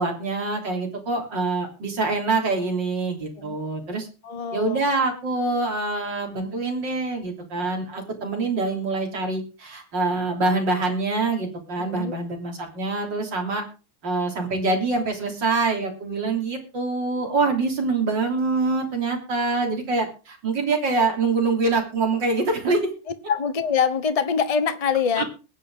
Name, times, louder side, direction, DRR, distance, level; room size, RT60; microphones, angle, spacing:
voice 1, 0.0-4.1 4.5-13.6 14.0-22.9 25.2-25.3, right 3 dB, 60° right, 3.9 m, -25 dB
voice 2, 4.2-4.9 11.8-12.2 19.6-19.8 23.3-25.2, left 6 dB, 25° left, 0.8 m, -24 dB
21.5 x 8.6 x 3.8 m
omnidirectional pair, 2.2 m